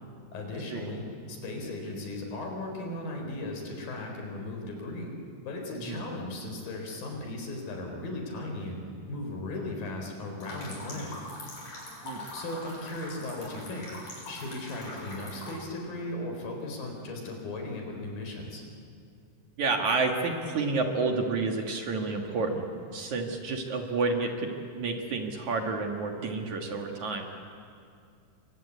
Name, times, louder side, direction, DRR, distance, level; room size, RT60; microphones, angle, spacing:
voice 1, 0.3-5.1 5.5-8.8 9.1-11.2 12.3-13.9 14.3-18.7, left 2 dB, 65° left, 2 dB, 6.0 m, -37 dB
sound 1, 10.4-15.6, left 1 dB, 45° left, 8.9 m, -43 dB
voice 2, 19.6-27.3, right 3 dB, 55° right, 2 dB, 2.9 m, -30 dB
29.0 x 24.0 x 8.4 m, 2.4 s
omnidirectional pair, 4.4 m